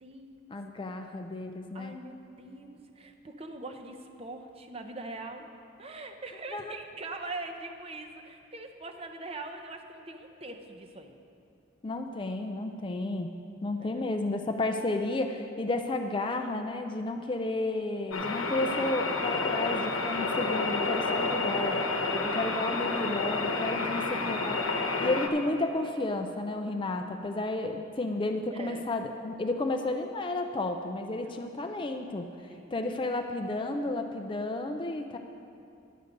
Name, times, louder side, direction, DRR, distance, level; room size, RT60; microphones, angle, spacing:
voice 1, 0.0-0.5 1.7-5.5 5.8-11.1 13.8-14.0 21.9-22.2 28.0-28.9 31.2-31.5 32.5-32.7, right 2 dB, 30° right, 5 dB, 0.7 m, -43 dB
voice 2, 0.5-1.9 6.5-6.8 11.8-13.3 13.6-21.8 22.2-24.7 25.0-32.3 32.7-35.2, left 2 dB, 25° left, 5 dB, 0.4 m, -32 dB
sound 1, 18.1-25.3, left 3 dB, 85° left, 0.9 m, -30 dB
11.0 x 8.0 x 5.2 m, 2.6 s
head